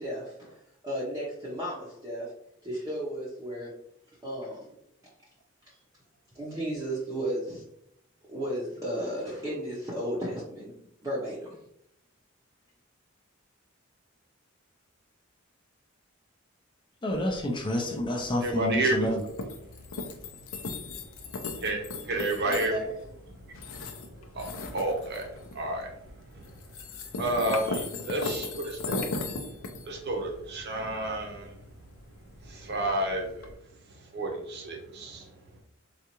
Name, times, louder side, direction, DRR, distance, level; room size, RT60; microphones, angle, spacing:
voice 1, 0.0-2.3 2.6-3.8 4.2-4.8 5.7-5.8 6.3-7.7 8.3-11.5 22.1-23.0, right 1 dB, 20° right, -7 dB, 0.7 m, -34 dB
voice 2, 17.0-19.2, left 1 dB, 25° left, 2 dB, 0.5 m, -29 dB
sound 1, 17.1-33.5, left 3 dB, 90° left, 0.5 m, -39 dB
voice 3, 18.4-19.1 21.4-22.7 24.4-24.5 24.7-26.0 26.3-26.4 27.2-29.1 29.8-31.6 32.4-33.5 34.1-35.3, right 1 dB, 55° right, 2 dB, 0.8 m, -30 dB
3.9 x 2.3 x 2.9 m, 0.75 s
head